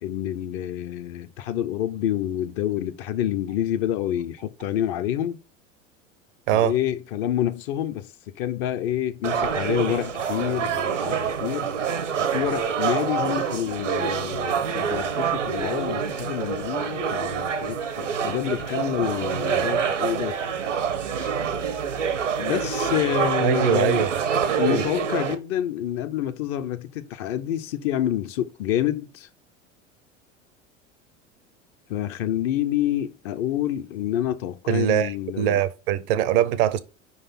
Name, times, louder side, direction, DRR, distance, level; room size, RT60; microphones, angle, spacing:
voice 1, 0.0-5.4 6.5-11.7 12.2-20.4 21.2-21.4 22.4-24.0 24.6-29.3 31.9-35.6, left 11 dB, 40° left, 0.6 m, -28 dB
sound 1, 9.2-25.3, right 6 dB, 75° right, 0.9 m, -26 dB
voice 2, 23.4-24.1 24.5-24.8 34.7-36.8, right 10 dB, 45° right, 0.6 m, -22 dB
5.2 x 4.0 x 5.5 m
figure-of-eight pair, 75°, 37 cm